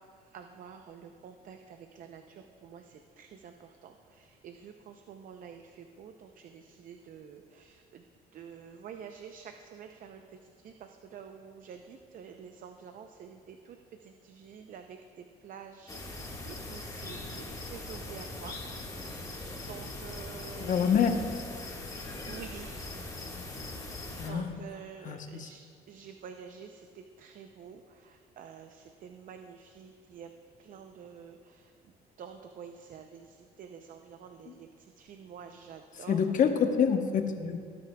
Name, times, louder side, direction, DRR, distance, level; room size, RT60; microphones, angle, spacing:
voice 1, 0.3-8.0 8.3-13.8 14.0-18.6 19.1-19.4 19.7-20.9 22.3-22.7 24.2-25.6 25.9-30.3 30.6-31.7 32.2-34.7 35.0-36.2, right 7 dB, 55° right, 6 dB, 0.6 m, -48 dB
sound 1, 15.9-24.3, left 2 dB, 20° left, 1.6 m, -41 dB
voice 2, 20.6-21.1 24.2-24.6 25.0-25.5 34.5-34.6 36.1-37.6, left 7 dB, 50° left, 6 dB, 0.9 m, -27 dB
17.5 x 9.3 x 2.3 m, 2.2 s
cardioid pair, 110°, 17 cm